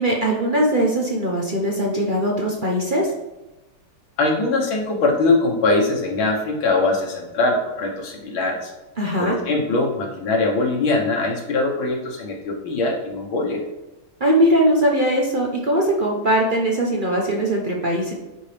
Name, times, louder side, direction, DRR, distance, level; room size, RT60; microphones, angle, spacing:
voice 1, 0.0-3.1 9.0-9.4 14.2-18.1, right 1 dB, 55° right, -1 dB, 0.5 m, -20 dB
voice 2, 4.2-8.7 9.2-13.6, left 2 dB, 75° left, 0 dB, 2.0 m, -22 dB
9.9 x 4.5 x 3.4 m, 1.0 s
omnidirectional pair, 2.2 m